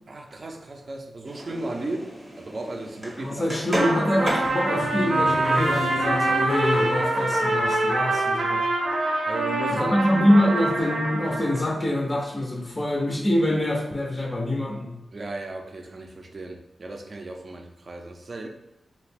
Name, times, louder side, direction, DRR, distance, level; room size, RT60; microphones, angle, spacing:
voice 1, 0.1-2.0 2.3-3.6 9.3-10.0 15.1-18.5, right 2 dB, 45° right, 2 dB, 0.4 m, -35 dB
sound 1, 1.2-7.5, equal, 15° right, 0.7 m, -34 dB
voice 2, 3.2-8.7 9.7-15.0, left 1 dB, 20° left, 1 dB, 0.4 m, -25 dB
Trumpet, 3.7-11.6, right 2 dB, 85° right, 0.7 m, -25 dB
sound 2, 4.8-7.5, left 1 dB, 85° left, 0.4 m, -30 dB
2.8 x 2.4 x 3.3 m, 0.93 s
wide cardioid pair, 105°, 0 cm